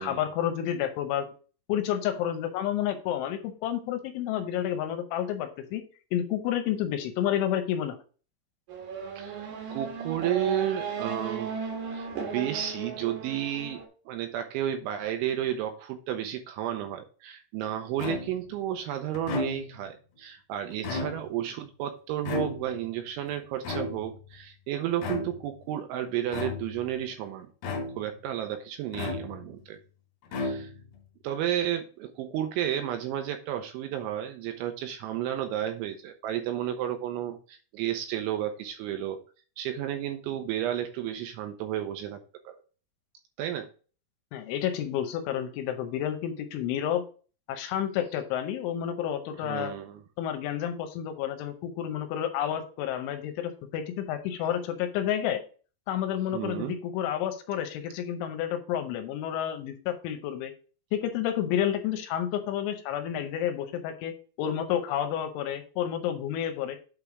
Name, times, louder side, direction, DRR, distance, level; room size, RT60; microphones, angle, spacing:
voice 1, 0.0-1.3 1.7-5.8 6.1-8.0 44.3-47.0 47.5-49.7 50.2-55.4 55.9-60.5 60.9-64.1 64.4-66.8, left 10 dB, 80° left, 7 dB, 3.0 m, -30 dB
Race car auto racing / Accelerating revving vroom, 8.7-13.9, right 5 dB, 65° right, 2.0 m, -36 dB
voice 2, 9.2-11.5 11.9-27.5 28.0-29.8 30.3-30.7 31.2-39.2 39.6-42.2 42.5-42.6 43.4-43.7 49.4-50.0 56.3-56.8, right 11 dB, 80° right, 6 dB, 2.9 m, -32 dB
sound 1, 18.0-18.5 19.1-19.9 20.7-21.5 22.2-22.9 23.6-24.3 25.0-25.5 26.3-26.9 27.6-28.2 28.9-29.6 30.3-31.0, left 3 dB, 60° left, 3.0 m, -34 dB
8.5 x 3.4 x 4.7 m, 0.38 s
omnidirectional pair, 5.8 m